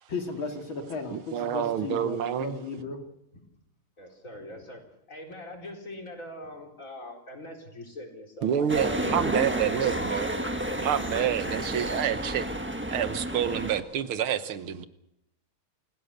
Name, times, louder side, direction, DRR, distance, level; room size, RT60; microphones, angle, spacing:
voice 1, 0.1-3.0, left 4 dB, 70° left, 4 dB, 3.3 m, -35 dB
voice 2, 1.1-2.6 8.4-10.3 10.8-12.5 12.9-14.9, right 9 dB, 85° right, 11 dB, 2.0 m, -28 dB
voice 3, 4.0-9.9 10.3-10.9, left 1 dB, 40° left, 1 dB, 4.7 m, -43 dB
sound 1, 8.7-13.8, right 1 dB, 5° right, 1.1 m, -31 dB
28.5 x 17.0 x 6.7 m, 0.84 s
omnidirectional pair, 2.3 m